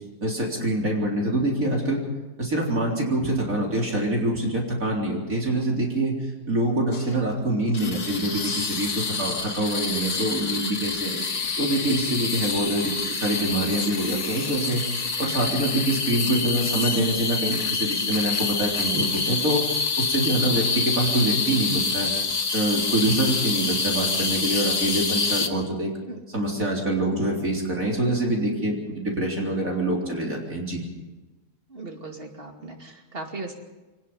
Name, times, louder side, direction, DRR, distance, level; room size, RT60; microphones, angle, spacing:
voice 1, 0.2-2.0 2.4-6.2 6.5-11.2 11.6-14.8 15.2-22.1 22.5-25.9 26.3-30.8, right 1 dB, 55° right, -1 dB, 4.2 m, -25 dB
sound 1, 6.9-7.4 7.7-25.5, left 4 dB, 50° left, 1.7 m, -27 dB
voice 2, 31.7-33.6, right 3 dB, 35° right, 3 dB, 2.7 m, -38 dB
24.0 x 19.5 x 5.6 m, 1.1 s
omnidirectional pair, 1.7 m